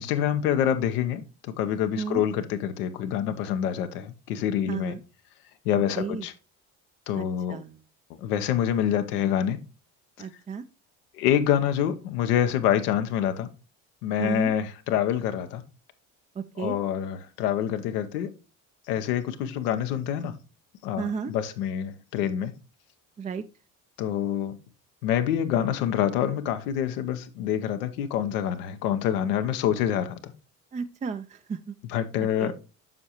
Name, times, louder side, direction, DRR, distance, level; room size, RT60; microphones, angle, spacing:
voice 1, 0.0-5.0 5.6-6.3 7.1-7.6 8.2-9.6 10.2-10.3 11.1-13.5 14.0-15.6 16.6-18.3 18.9-20.3 20.8-22.5 24.0-24.6 25.0-30.3 31.8-32.5, left 10 dB, 90° left, 0.8 m, -26 dB
voice 2, 4.7-5.0 6.0-6.3 7.1-7.8 10.2-10.6 14.2-14.5 16.4-16.8 21.0-21.3 23.2-23.4 30.7-31.7 32.4-32.5, right 5 dB, 20° right, 0.3 m, -33 dB
7.4 x 5.5 x 2.9 m
hypercardioid pair, 65°, 45 cm